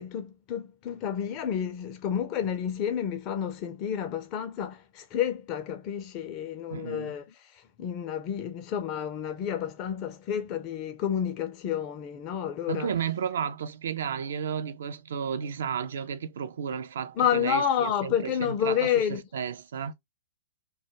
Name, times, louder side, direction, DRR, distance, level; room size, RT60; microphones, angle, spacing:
voice 1, 0.0-12.9 17.2-19.2, left 9 dB, 35° left, 0.4 m, -30 dB
voice 2, 6.7-7.1 12.7-19.0 19.3-19.9, right 7 dB, 65° right, 0.3 m, -33 dB
2.2 x 2.1 x 2.9 m
hypercardioid pair, 120°, 0 cm